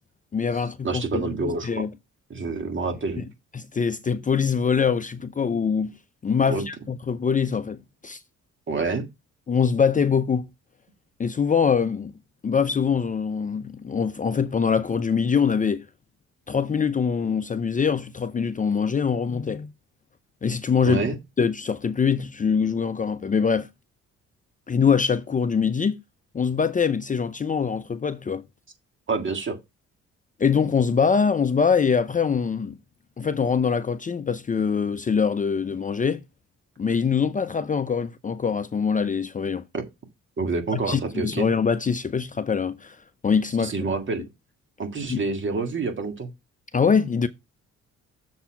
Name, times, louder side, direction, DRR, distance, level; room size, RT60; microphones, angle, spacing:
voice 1, 0.3-1.9 3.2-3.3 3.5-5.9 6.2-7.8 8.0-8.2 9.5-10.5 11.2-12.1 12.4-15.9 16.5-19.7 20.4-21.0 21.4-23.7 24.7-26.0 26.3-28.4 30.4-32.8 33.2-36.2 36.8-39.6 40.7-43.0 43.2-43.7 45.1-45.2 46.7-47.3, left 6 dB, 25° left, 0.5 m, -23 dB
voice 2, 0.8-1.9 2.3-3.3 6.5-6.6 8.7-9.1 20.9-21.2 29.1-29.6 39.7-39.8 40.4-41.5 43.6-44.2 44.8-46.3, right 4 dB, 40° right, 1.9 m, -27 dB
7.0 x 4.1 x 5.7 m
cardioid pair, 90°, 30 cm